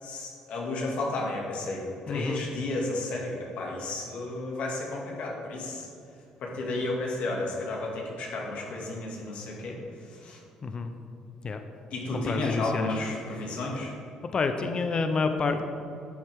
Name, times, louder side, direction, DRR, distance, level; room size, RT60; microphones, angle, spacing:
voice 1, 0.0-5.9 6.4-10.4 11.9-13.9, left 2 dB, 70° left, -2 dB, 2.2 m, -32 dB
voice 2, 2.1-2.4 10.6-10.9 11.4-11.6 12.1-12.9 14.3-15.6, left 4 dB, 40° left, 7 dB, 0.7 m, -28 dB
11.0 x 7.6 x 3.6 m, 2.5 s
cardioid pair, 90°, 2 cm